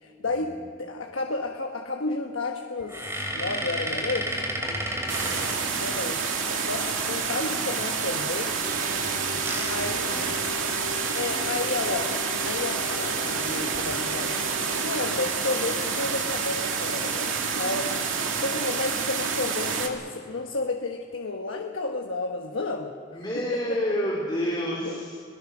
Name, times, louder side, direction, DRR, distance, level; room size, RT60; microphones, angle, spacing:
voice 1, 0.0-4.4 5.7-6.2 6.6-8.8 9.6-10.4 11.1-14.3 14.8-17.9 18.4-23.2 23.5-23.8 24.8-25.0, left 3 dB, 80° left, 2 dB, 1.3 m, -32 dB
sound 1, 2.8-6.3 9.0-10.9 11.4-11.5 11.8-12.0 13.5-13.8 14.4-14.9, right 1 dB, 15° right, 2.8 m, -32 dB
sound 2, 5.1-19.9, right 5 dB, 80° right, 2.3 m, -28 dB
voice 2, 5.2-5.8 10.0-10.7 23.1-25.1, equal, 20° left, -5 dB, 3.4 m, -30 dB
sound 3, 8.6-15.2, left 3 dB, 40° right, 2.1 m, -39 dB
26.5 x 19.0 x 6.2 m, 2.5 s
head